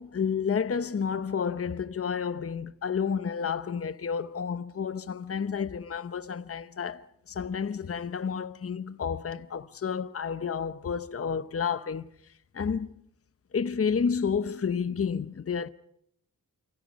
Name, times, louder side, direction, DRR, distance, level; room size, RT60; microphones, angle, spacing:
voice 1, 0.0-12.1 12.5-12.9 13.5-15.7, left 6 dB, 40° left, 0.8 m, -30 dB
29.0 x 24.5 x 5.2 m
wide cardioid pair, 100°, 35 cm